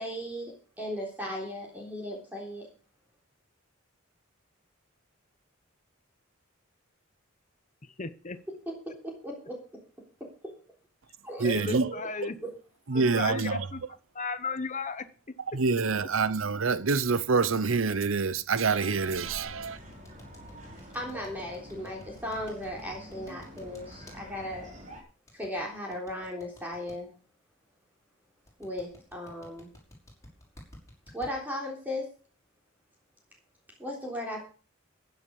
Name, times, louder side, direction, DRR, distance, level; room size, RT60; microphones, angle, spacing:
voice 1, 0.0-2.7 8.7-8.8 9.0-9.6 11.2-12.1 20.9-24.7 25.3-27.1 28.6-29.7 31.1-32.1 33.8-34.4, left 1 dB, 10° right, 3.6 m, -37 dB
voice 2, 8.0-8.4 11.4-12.4 12.9-13.8 14.1-15.0, left 4 dB, 35° left, 1.0 m, -34 dB
voice 3, 11.4-11.9 12.9-13.7 15.5-19.8, right 4 dB, 75° right, 0.8 m, -26 dB
sound 1, 19.0-25.0, equal, 40° right, 4.1 m, -47 dB
sound 2, 19.6-24.2 25.3-26.9 28.5-31.3, left 1 dB, 15° left, 5.8 m, -52 dB
15.5 x 9.4 x 5.4 m
head